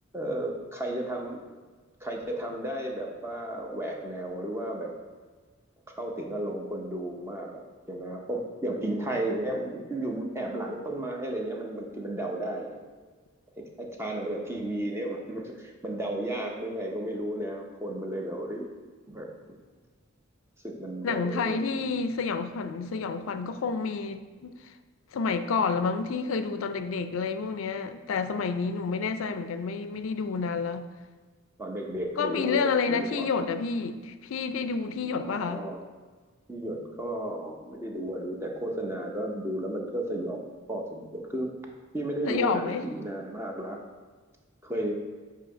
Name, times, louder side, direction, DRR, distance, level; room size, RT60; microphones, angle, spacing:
voice 1, 0.1-1.5 2.0-4.9 6.0-12.8 13.6-18.7 19.1-19.3 20.6-21.6 31.6-33.3 35.1-35.8 36.5-40.4 40.7-41.5 41.9-43.8 44.6-45.0, right 1 dB, 15° right, 0 dB, 0.7 m, -33 dB
voice 2, 21.0-24.7 25.1-30.9 32.2-35.6 42.3-42.8, left 5 dB, 75° left, 10 dB, 0.4 m, -29 dB
7.3 x 2.8 x 5.0 m, 1.4 s
head